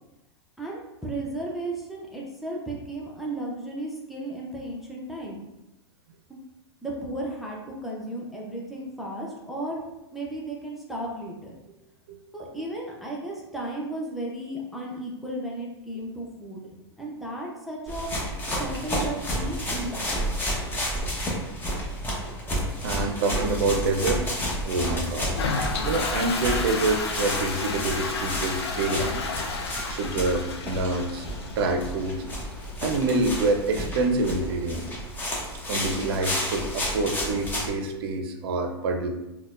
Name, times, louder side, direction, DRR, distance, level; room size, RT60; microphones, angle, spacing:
voice 1, 0.6-5.4 6.3-6.4 6.8-9.8 10.1-11.5 12.3-16.6 17.0-18.2 18.6-20.3, right 1 dB, ahead, -3 dB, 0.6 m, -34 dB
sound 1, 17.9-37.7, equal, 15° left, 0.9 m, -31 dB
voice 2, 22.8-24.4 24.6-25.3 25.8-29.2 29.9-32.2 32.8-34.8 35.7-39.1, right 2 dB, 60° right, 5 dB, 0.5 m, -26 dB
Toilet flush, 25.2-36.7, left 4 dB, 75° left, 0.5 m, -34 dB
4.2 x 2.2 x 2.5 m, 0.94 s
hypercardioid pair, 105°, 14 cm